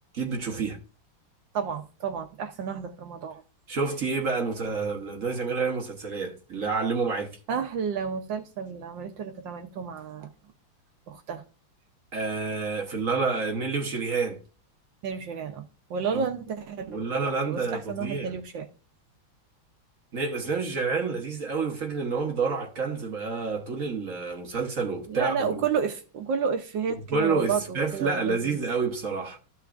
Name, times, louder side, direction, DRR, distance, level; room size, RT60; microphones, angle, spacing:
voice 1, 0.1-0.8 3.7-7.4 12.1-14.4 16.1-16.3 16.9-18.3 20.1-25.6 27.1-29.4, right 4 dB, 45° right, 1.2 m, -28 dB
voice 2, 1.5-3.4 7.5-10.3 11.1-11.4 15.0-15.6 15.9-18.7 25.1-28.6, right 6 dB, 65° right, 1.3 m, -31 dB
13.5 x 5.8 x 2.5 m
omnidirectional pair, 2.4 m